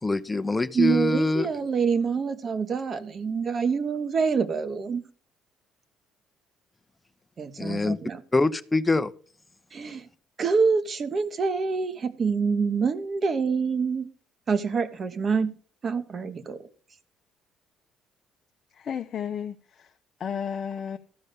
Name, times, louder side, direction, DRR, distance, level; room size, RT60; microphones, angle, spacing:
voice 1, 0.0-1.5 7.6-8.0 8.3-9.1, left 2 dB, 20° left, 0.8 m, -24 dB
voice 2, 0.7-5.0 7.4-8.2 9.7-10.1 10.4-14.1 14.5-15.5 15.8-16.7, right 5 dB, 45° right, 1.3 m, -26 dB
voice 3, 18.8-19.9 20.2-21.0, left 7 dB, 55° left, 0.7 m, -33 dB
13.5 x 5.3 x 6.9 m
supercardioid pair, 70°, 0 cm